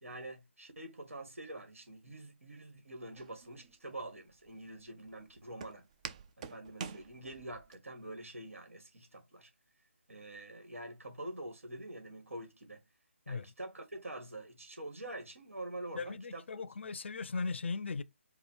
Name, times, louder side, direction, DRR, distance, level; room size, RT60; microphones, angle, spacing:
voice 1, 0.0-5.9 6.4-9.5 10.1-12.8 13.3-16.4, right 1 dB, 80° right, 1.6 m, -46 dB
Walk footsteps, 3.2-7.8, right 6 dB, 30° right, 0.4 m, -48 dB
voice 2, 15.9-18.0, left 4 dB, 60° left, 0.6 m, -38 dB
4.8 x 2.1 x 4.4 m
figure-of-eight pair, 150°, 7 cm